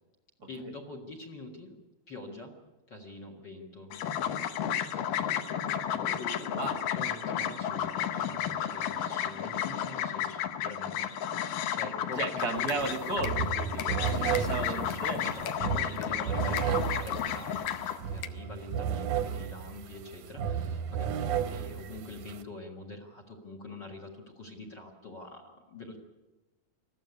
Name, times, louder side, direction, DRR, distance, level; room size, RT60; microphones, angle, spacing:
voice 1, 0.5-1.8 2.1-2.5 2.9-6.5 6.9-11.1 11.7-12.9 13.4-13.6 14.1-26.0, left 2 dB, 40° left, 4 dB, 1.6 m, -45 dB
sound 1, 3.9-18.0, left 9 dB, 70° left, 2.5 m, -32 dB
voice 2, 6.5-6.8 12.2-15.4, right 3 dB, 45° right, 5 dB, 1.3 m, -35 dB
sound 2, 12.5-18.3, left 11 dB, 85° left, 1.5 m, -44 dB
sound 3, 12.8-12.9 13.2-22.4, right 8 dB, 70° right, 2.1 m, -33 dB
21.5 x 14.0 x 9.5 m, 1.1 s
omnidirectional pair, 4.3 m